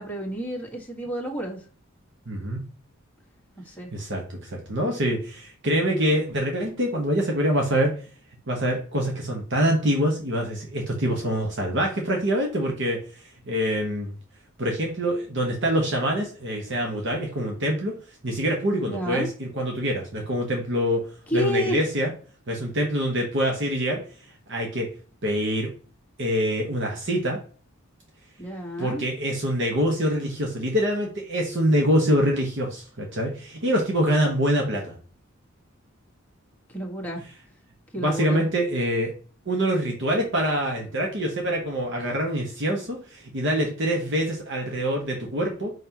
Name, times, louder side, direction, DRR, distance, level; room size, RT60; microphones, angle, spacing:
voice 1, 0.0-1.6 3.7-3.9 18.9-19.3 21.3-21.8 28.4-29.0 36.7-37.2 37.9-38.5, equal, 10° left, -2 dB, 1.6 m, -30 dB
voice 2, 2.3-2.6 3.9-7.9 8.5-13.0 13.5-14.1 14.6-17.9 18.2-21.0 21.3-22.1 22.5-24.0 24.5-24.9 25.2-25.7 26.2-27.4 28.8-35.0 38.0-39.1 39.5-45.7, equal, 60° right, 0 dB, 1.3 m, -25 dB
5.7 x 5.5 x 3.0 m, 0.39 s
head